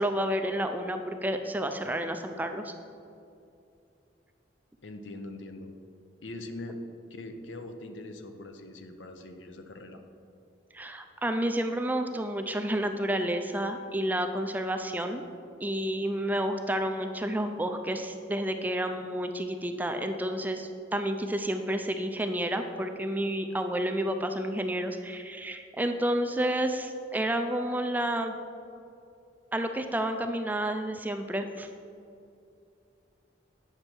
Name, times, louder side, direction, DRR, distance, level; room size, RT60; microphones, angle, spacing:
voice 1, 0.0-2.7 10.7-15.2 15.6-28.4 29.5-31.7, right 1 dB, 10° right, 6 dB, 0.4 m, -30 dB
voice 2, 4.8-5.8 6.2-6.8 7.1-10.0, left 2 dB, 80° left, 6 dB, 0.7 m, -42 dB
9.0 x 6.5 x 4.5 m, 2.6 s
head